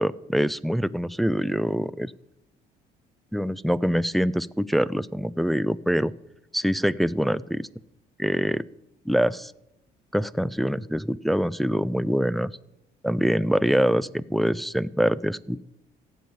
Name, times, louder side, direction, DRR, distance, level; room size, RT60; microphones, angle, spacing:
voice 1, 0.0-2.1 3.3-6.1 6.5-7.7 8.2-8.6 9.1-9.5 10.1-12.5 13.0-15.6, equal, ahead, 15 dB, 0.4 m, -24 dB
15.5 x 8.3 x 9.3 m, 0.86 s
cardioid pair, 110°, 17 cm